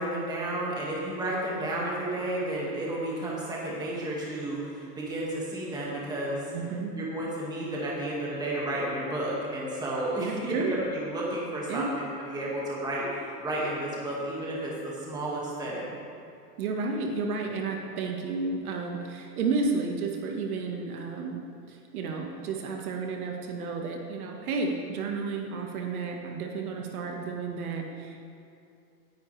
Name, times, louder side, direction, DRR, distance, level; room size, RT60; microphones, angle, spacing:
voice 1, 0.0-6.5 7.0-15.9, right 1 dB, 10° right, -5 dB, 1.9 m, -32 dB
voice 2, 6.5-7.0 10.2-10.8 11.7-11.9 16.6-21.4 21.7-28.2, right 4 dB, 60° right, 2 dB, 1.6 m, -32 dB
18.5 x 10.0 x 3.3 m, 2.6 s
supercardioid pair, 160°, 49 cm